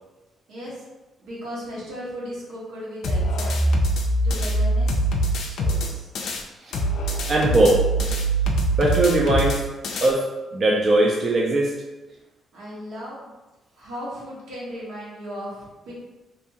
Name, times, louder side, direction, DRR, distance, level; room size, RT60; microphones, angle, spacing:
voice 1, 0.5-0.8 1.2-3.8 4.2-5.0 5.4-6.1 12.5-13.3 13.7-15.9, equal, 85° right, -7 dB, 1.2 m, -36 dB
sound 1, 3.0-6.4 6.7-10.1, right 1 dB, 70° left, 0.4 m, -23 dB
voice 2, 7.3-7.8 8.8-9.6 10.0-10.2 10.5-11.7, right 2 dB, 45° right, -2 dB, 0.4 m, -19 dB
2.6 x 2.3 x 2.8 m, 1.1 s
cardioid pair, 90°, 0 cm